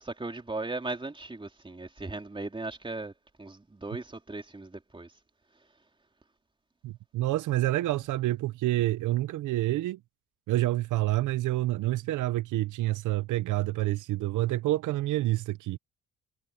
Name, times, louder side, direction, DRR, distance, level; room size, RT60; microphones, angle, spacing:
voice 1, 0.0-3.1 3.4-5.2 5.5-5.7, right 2 dB, 15° right, 3.3 m, -37 dB
voice 2, 6.8-10.0 10.5-15.8, right 16 dB, 85° right, 0.8 m, -28 dB
cardioid pair, 90°, 30 cm